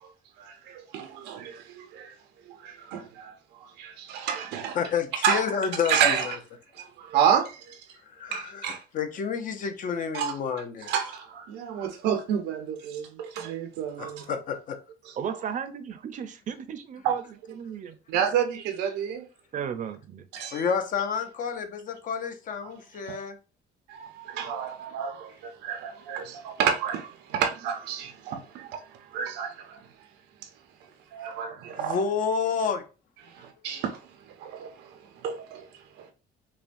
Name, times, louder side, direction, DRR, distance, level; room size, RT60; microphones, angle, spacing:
voice 1, 0.4-2.1 2.4-3.3 3.6-4.8 5.2-5.4 5.9-6.4 6.8-7.8 8.3-8.8 10.1-10.3 10.9-14.3 15.1-15.2 17.0-17.2 18.1-19.2 20.3-20.6 23.1-23.2 23.9-28.8 29.1-29.8 31.1-32.0 33.3-34.0 34.4-35.7 36.0-36.1, right 8 dB, 90° right, 0.8 m, -30 dB
voice 2, 4.7-6.3 6.8-6.9 8.1-10.9 14.0-14.8 20.5-23.4 31.8-32.8, left 6 dB, 50° left, 0.7 m, -30 dB
voice 3, 15.2-18.0 19.5-20.3, right 8 dB, 50° right, 0.6 m, -35 dB
5.7 x 2.2 x 2.6 m
cardioid pair, 110°, 17 cm